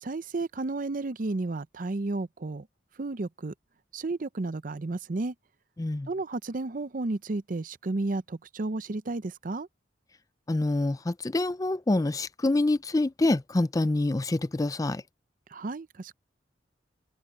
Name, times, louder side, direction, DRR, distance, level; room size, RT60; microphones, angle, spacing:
voice 1, 0.0-2.7 3.0-3.5 3.9-5.3 6.1-9.7 15.5-16.1, right 2 dB, 45° right, 0.6 m, -32 dB
voice 2, 5.8-6.1 10.5-15.0, left 2 dB, 20° left, 0.4 m, -26 dB
head